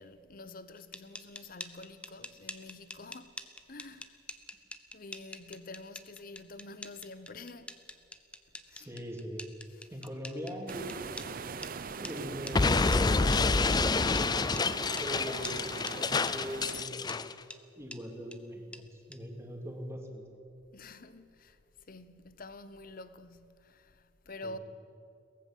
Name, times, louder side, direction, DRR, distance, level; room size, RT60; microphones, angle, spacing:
voice 1, 0.0-3.3 3.7-4.2 4.9-7.8 8.7-8.9 20.7-21.6 21.9-24.6, left 2 dB, 50° left, 0.9 m, -48 dB
sound 1, 0.8-11.3 11.6-11.7 12.0-12.1 12.5-12.6 12.9-13.0 13.3-13.4 13.7-13.8 14.2-14.3 14.6-14.7 15.0-15.1 15.4-15.6 15.9-16.0 16.3-16.4 16.7-16.8 17.1-17.2 17.5-17.6 17.9-18.0 18.3-18.4 18.7-18.8 19.1-19.2, left 1 dB, 5° left, 0.9 m, -44 dB
voice 2, 8.7-9.5 9.9-10.9 11.9-20.2 24.4-24.6, equal, 15° right, 2.9 m, -42 dB
sound 2, 10.7-16.8, right 4 dB, 50° right, 0.7 m, -41 dB
Explosion, 12.5-17.3, left 3 dB, 25° left, 0.5 m, -28 dB
23.0 x 18.5 x 7.5 m
head